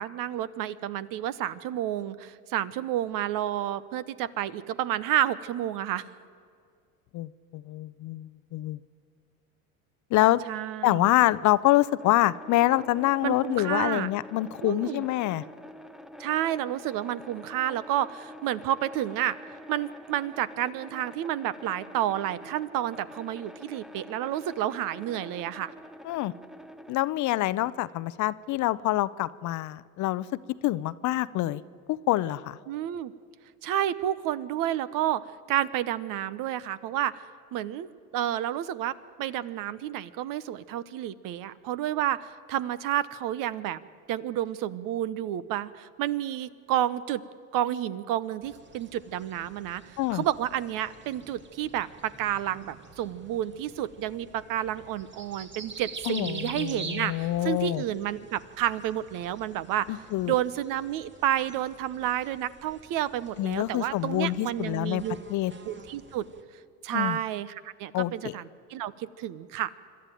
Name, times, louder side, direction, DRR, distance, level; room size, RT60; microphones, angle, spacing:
voice 1, 0.0-6.0 10.5-11.1 13.2-14.1 14.6-15.1 16.2-19.4 19.7-25.7 32.7-33.1 33.6-35.2 35.5-37.2 37.5-37.9 38.1-43.8 44.1-47.2 47.5-60.0 60.2-65.2 65.6-66.3 66.8-69.7, right 12 dB, 50° right, 16 dB, 0.9 m, -30 dB
voice 2, 7.1-8.8 10.1-10.4 10.8-15.4 26.0-26.3 26.9-30.3 30.6-31.6 31.9-32.6 50.0-50.2 56.1-57.8 59.9-60.3 63.4-65.0 65.3-65.5 66.9-67.2 67.9-68.3, left 16 dB, 45° left, 17 dB, 0.7 m, -26 dB
sound 1, 12.0-27.0, equal, ahead, 0.7 m, -46 dB
sound 2, 48.4-66.4, right 4 dB, 25° right, 1.9 m, -47 dB
25.5 x 12.5 x 9.2 m, 2.2 s
hypercardioid pair, 90°, 41 cm